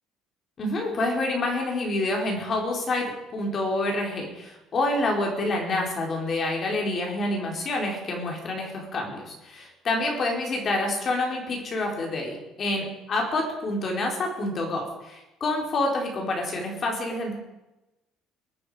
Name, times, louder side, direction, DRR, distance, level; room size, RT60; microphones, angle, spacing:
voice 1, 0.6-17.3, left 2 dB, 35° left, 1 dB, 4.3 m, -27 dB
22.5 x 9.7 x 5.1 m, 0.97 s
cardioid pair, 160°, 0 cm